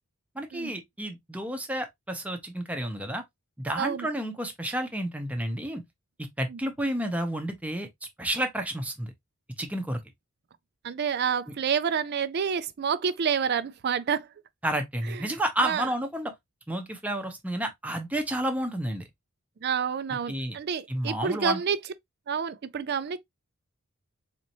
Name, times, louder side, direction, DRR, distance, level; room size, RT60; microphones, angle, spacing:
voice 1, 0.3-3.2 3.6-5.8 6.4-7.9 8.2-9.1 9.6-10.0 14.6-16.3 16.7-19.1 20.3-20.6 20.9-21.6, right 1 dB, 5° right, 0.7 m, -30 dB
voice 2, 3.8-4.1 6.5-6.6 10.8-14.3 15.1-15.3 15.6-15.9 19.6-21.8 22.3-23.2, right 7 dB, 50° right, 0.4 m, -28 dB
4.2 x 2.7 x 2.8 m
head